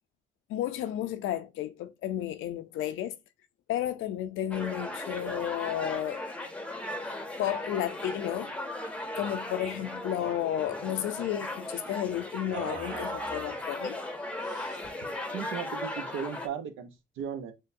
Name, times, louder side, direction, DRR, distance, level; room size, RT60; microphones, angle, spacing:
voice 1, 0.5-3.2 3.7-6.2 7.4-8.5 9.2-14.0, left 11 dB, 85° left, 0.5 m, -32 dB
sound 1, 4.5-16.5, left 1 dB, 5° left, 0.7 m, -37 dB
sound 2, 9.2-9.4 9.6-9.9 10.2-10.9 12.5-13.8 14.4-15.0, right 4 dB, 40° right, 1.6 m, -44 dB
voice 2, 15.3-17.5, right 8 dB, 85° right, 0.7 m, -36 dB
6.3 x 2.2 x 2.6 m
cardioid pair, 90°, 20 cm